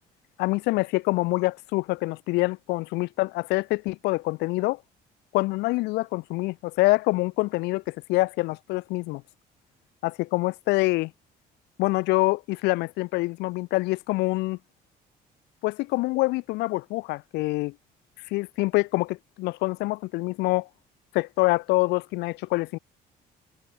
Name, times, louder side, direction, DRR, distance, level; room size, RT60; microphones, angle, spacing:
voice 1, 0.4-4.8 5.3-9.2 10.0-11.1 11.8-14.6 15.6-17.8 18.2-20.7 21.1-22.8, left 22 dB, 85° left, 0.4 m, -25 dB
cardioid pair, 110°, 17 cm